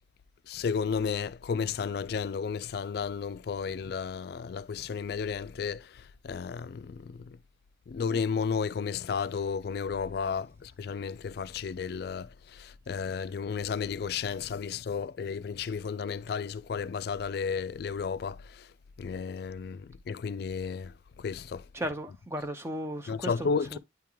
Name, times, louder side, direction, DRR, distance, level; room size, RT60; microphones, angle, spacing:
voice 1, 0.5-7.4 7.9-18.7 19.0-21.6 22.1-22.2 23.1-23.8, left 6 dB, 55° left, 0.3 m, -33 dB
voice 2, 21.7-23.8, equal, 15° right, 0.6 m, -36 dB
9.3 x 3.6 x 3.0 m
head